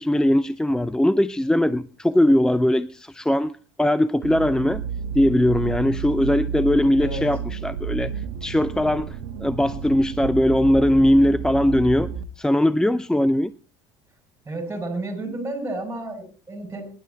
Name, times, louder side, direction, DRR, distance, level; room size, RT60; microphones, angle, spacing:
voice 1, 0.0-4.8 5.1-8.1 8.4-12.1 12.4-13.5, left 1 dB, 5° left, 0.5 m, -20 dB
sound 1, 4.2-12.2, right 7 dB, 85° right, 1.2 m, -31 dB
voice 2, 14.5-16.9, right 2 dB, 15° right, 7.7 m, -31 dB
22.5 x 11.5 x 2.9 m
supercardioid pair, 95°, 13 cm